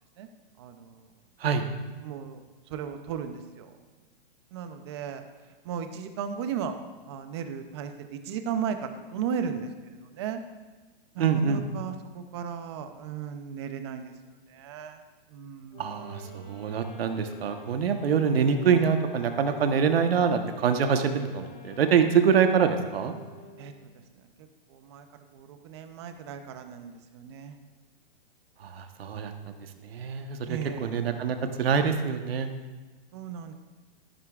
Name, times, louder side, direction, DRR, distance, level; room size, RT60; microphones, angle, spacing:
voice 1, 0.6-1.1 2.0-3.7 4.5-5.2 5.6-6.8 7.1-10.4 11.1-14.1 14.4-15.0 15.3-15.9 23.6-23.7 24.1-25.1 25.3-27.6 30.5-30.9 33.1-33.5, right 7 dB, 30° right, 8 dB, 0.6 m, -36 dB
voice 2, 11.2-11.6 15.8-23.1 28.6-29.3 29.6-32.5, right 6 dB, 80° right, 6 dB, 1.1 m, -25 dB
sound 1, 15.7-23.9, left 3 dB, 50° left, 1.6 m, -48 dB
13.0 x 10.5 x 2.4 m, 1.3 s
hypercardioid pair, 165°, 29 cm